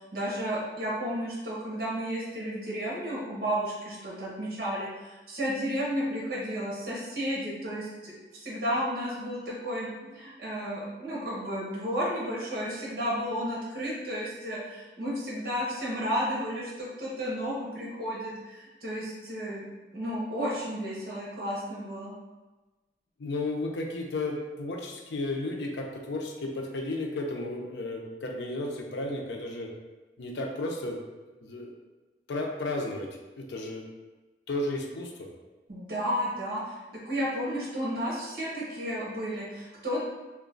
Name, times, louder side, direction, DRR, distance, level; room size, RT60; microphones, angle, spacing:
voice 1, 0.1-19.6 19.9-22.1 35.7-40.0, equal, 60° right, -6 dB, 1.2 m, -32 dB
voice 2, 23.2-29.7 30.2-31.0 31.4-31.7 32.3-33.1 33.4-33.9 34.5-35.3, left 2 dB, 80° left, 1 dB, 0.5 m, -33 dB
3.0 x 2.2 x 3.8 m, 1.2 s
head